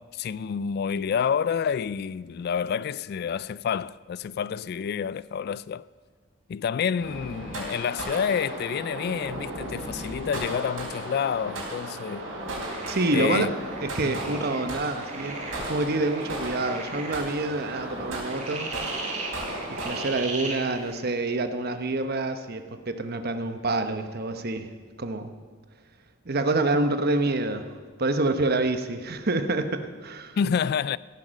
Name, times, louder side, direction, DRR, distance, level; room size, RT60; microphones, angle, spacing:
voice 1, 0.0-5.9 6.5-12.3 13.1-13.5 14.0-14.4 30.4-31.0, left 7 dB, 55° left, 0.3 m, -28 dB
sound 1, 7.0-20.1, right 1 dB, 80° right, 4.5 m, -35 dB
sound 2, 12.6-21.0, right 3 dB, 40° right, 2.3 m, -39 dB
voice 2, 12.9-13.5 13.9-18.8 19.7-24.7 25.0-25.3 26.3-27.7 28.0-30.4, right 2 dB, 55° right, 1.0 m, -27 dB
16.0 x 9.4 x 6.4 m
head